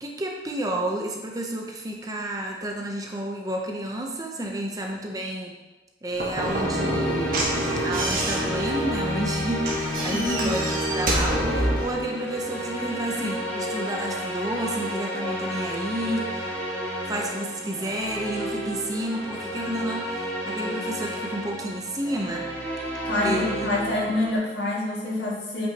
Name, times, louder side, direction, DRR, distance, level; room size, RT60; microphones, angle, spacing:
voice 1, 0.0-5.6 6.0-7.5 7.8-16.4 17.1-22.5 23.2-23.7 24.1-24.2, right 1 dB, 20° right, 1 dB, 0.6 m, -31 dB
Slam / Knock, 6.1-12.0, right 1 dB, 50° right, 1.2 m, -28 dB
sound 1, 6.4-24.3, equal, 10° left, 1.2 m, -31 dB
voice 2, 10.1-10.5 23.1-25.7, left 1 dB, 70° left, -5 dB, 2.0 m, -26 dB
8.2 x 5.4 x 2.8 m, 1.1 s
head